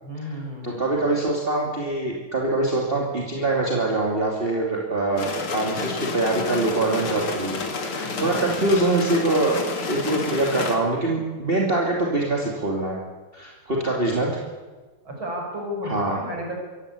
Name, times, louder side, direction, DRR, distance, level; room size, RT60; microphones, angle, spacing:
voice 1, 0.0-1.1 8.0-8.7 13.7-14.4 15.0-16.5, equal, 65° right, 1 dB, 6.6 m, -34 dB
voice 2, 0.6-9.6 9.9-13.0 13.3-14.4 15.8-16.2, right 2 dB, 25° right, -1 dB, 2.9 m, -24 dB
sound 1, 5.2-10.8, left 4 dB, 85° left, 3.4 m, -30 dB
25.0 x 15.5 x 8.5 m, 1.3 s
omnidirectional pair, 2.4 m